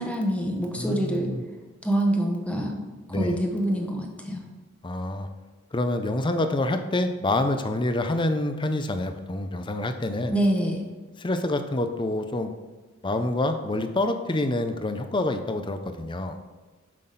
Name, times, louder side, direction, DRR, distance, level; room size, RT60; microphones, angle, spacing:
voice 1, 0.0-1.3 1.8-2.8 3.2-4.4 10.3-10.8, right 1 dB, 5° left, 1 dB, 1.0 m, -25 dB
voice 2, 0.8-1.4 3.1-3.4 4.8-5.3 5.7-10.4 11.2-12.5 13.0-16.4, left 2 dB, 25° left, 8 dB, 0.5 m, -27 dB
7.5 x 5.9 x 4.0 m, 1.3 s
head